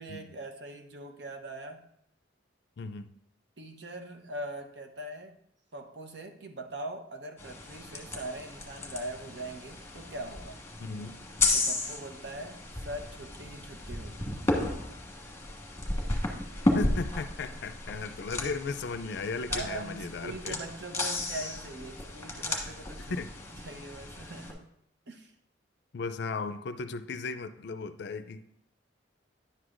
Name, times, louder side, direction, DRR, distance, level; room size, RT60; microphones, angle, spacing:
voice 1, 0.0-1.9 3.6-5.4 5.7-10.6 11.5-14.3 17.5-17.8 19.5-23.2 23.5-24.7 25.1-25.3, right 2 dB, 60° right, 5 dB, 0.8 m, -41 dB
voice 2, 2.8-3.1 10.8-11.2 16.7-20.6 23.1-23.3 25.9-28.4, left 4 dB, 60° left, 11 dB, 0.4 m, -36 dB
sound 1, 7.4-24.5, left 2 dB, 15° left, 1.4 m, -34 dB
10.5 x 7.8 x 2.5 m, 0.73 s
head